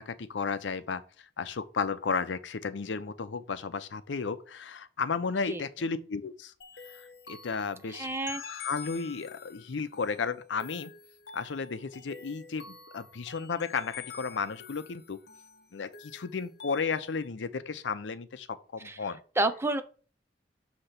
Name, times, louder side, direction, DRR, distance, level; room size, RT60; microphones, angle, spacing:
voice 1, 0.0-6.5 6.9-10.9 11.3-15.2 15.7-19.2, left 5 dB, 90° left, 0.6 m, -34 dB
sound 1, 6.6-17.3, left 6 dB, 65° left, 0.9 m, -48 dB
voice 2, 7.9-8.4 18.8-19.0 19.4-19.8, right 2 dB, 15° right, 0.5 m, -29 dB
6.6 x 2.9 x 5.8 m
head